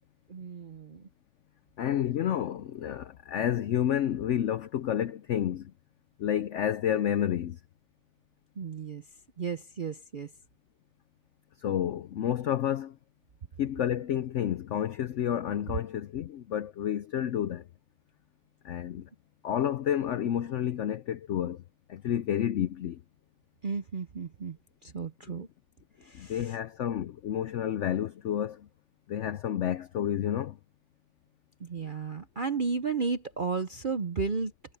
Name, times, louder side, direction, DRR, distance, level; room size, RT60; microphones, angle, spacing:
voice 1, 0.3-1.1 8.6-9.0 9.4-10.3 23.6-24.6 24.8-25.5 26.0-26.6 31.6-34.5, right 5 dB, 55° right, 0.5 m, -33 dB
voice 2, 1.8-5.7 6.2-7.6 11.6-13.0 13.6-17.7 18.6-19.1 19.4-21.6 21.9-23.0 26.1-28.7 29.1-30.6, left 10 dB, 90° left, 0.6 m, -30 dB
omnidirectional pair, 1.9 m